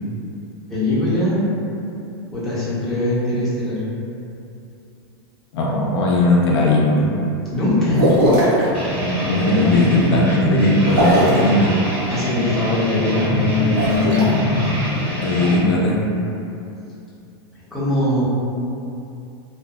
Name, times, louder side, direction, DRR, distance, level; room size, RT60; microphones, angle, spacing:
voice 1, 0.7-1.5 2.3-3.8 7.5-8.1 9.4-9.9 12.1-14.7 17.7-18.2, left 2 dB, ahead, -12 dB, 0.5 m, -21 dB
voice 2, 5.5-7.0 8.7-11.7 15.2-16.0, left 2 dB, 80° left, -3 dB, 0.5 m, -18 dB
sound 1, 7.9-8.7 10.8-11.5 13.6-14.2, equal, 60° right, 0.7 m, -18 dB
sound 2, 8.7-15.6, equal, 30° right, 1.4 m, -24 dB
2.6 x 2.1 x 2.2 m, 2.7 s
supercardioid pair, 160°, 14 cm